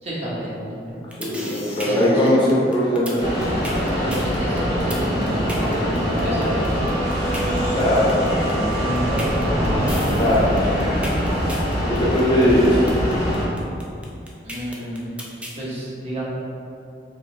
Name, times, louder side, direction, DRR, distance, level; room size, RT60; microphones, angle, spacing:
voice 1, 0.0-1.0 1.8-2.3 4.0-6.8 8.8-9.6 14.4-15.2 15.5-16.2, equal, 35° right, -8 dB, 1.1 m, -29 dB
sound 1, 0.9-15.6, equal, 5° right, 0.3 m, -35 dB
voice 2, 1.2-3.3 7.7-8.7 10.2-10.9 11.9-12.8, left 1 dB, 25° left, -6 dB, 0.6 m, -20 dB
sound 2, 1.7-6.9 7.6-8.1 8.7-10.2 10.5-12.5, equal, 85° left, 0.5 m, -39 dB
sound 3, 3.2-13.4, equal, 75° right, 1.5 m, -23 dB
3.9 x 2.6 x 3.2 m, 2.5 s
head